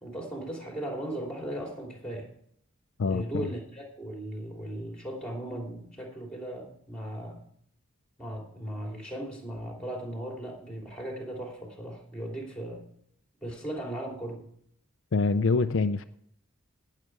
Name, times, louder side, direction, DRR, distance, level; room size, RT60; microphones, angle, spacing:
voice 1, 0.0-2.3 3.0-7.4 8.2-12.9 13.4-14.5, right 1 dB, 5° left, 3.0 m, -37 dB
voice 2, 3.0-3.5 15.1-16.0, left 4 dB, 65° left, 0.5 m, -25 dB
18.0 x 6.7 x 4.7 m
head